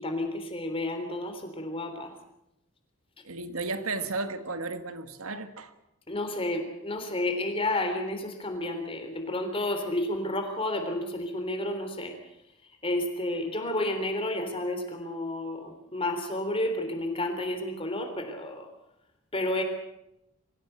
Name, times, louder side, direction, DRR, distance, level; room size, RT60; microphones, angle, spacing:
voice 1, 0.0-2.1 6.1-12.1 12.8-18.7 19.3-19.6, left 1 dB, 25° left, 3.6 m, -31 dB
voice 2, 3.2-5.7, right 3 dB, 85° right, 1.7 m, -34 dB
24.0 x 16.0 x 8.2 m
head